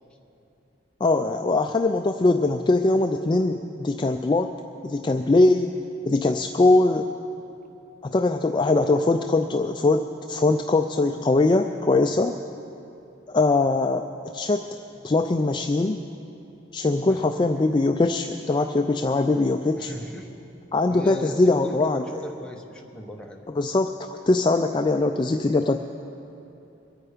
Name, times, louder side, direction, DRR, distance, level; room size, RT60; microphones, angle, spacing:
voice 1, 1.0-4.5 4.8-5.8 6.1-7.1 8.0-12.4 13.3-14.1 14.3-14.7 15.0-16.0 16.7-19.9 20.7-22.0 23.6-25.8, left 2 dB, 25° left, 6 dB, 0.3 m, -21 dB
voice 2, 19.8-20.3 20.9-23.4, equal, 5° left, 0 dB, 1.0 m, -38 dB
22.5 x 9.2 x 5.0 m, 2.9 s
head